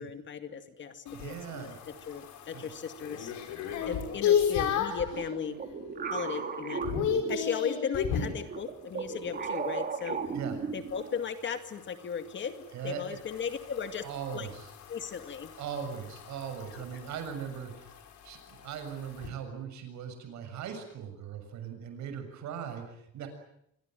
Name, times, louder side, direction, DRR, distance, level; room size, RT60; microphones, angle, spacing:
voice 1, 0.0-1.7 2.1-3.3 3.9-5.5 6.1-6.8 7.3-10.2 10.7-14.0 14.3-14.5 14.9-15.5 16.7-16.8, left 7 dB, 40° left, 8 dB, 2.3 m, -36 dB
sound 1, 1.1-5.1 5.6-6.0 6.3-8.4 10.9-19.3, left 8 dB, 70° left, 6.1 m, -34 dB
voice 2, 1.1-1.8 2.5-2.7 10.3-10.6 12.7-13.2 14.0-14.7 15.6-17.9 18.2-23.3, right 7 dB, 65° right, 8 dB, 6.9 m, -39 dB
sound 2, 5.1-7.9 8.5-11.2, right 5 dB, 30° right, 3.4 m, -36 dB
26.5 x 23.0 x 9.1 m, 0.77 s
cardioid pair, 170°, 30 cm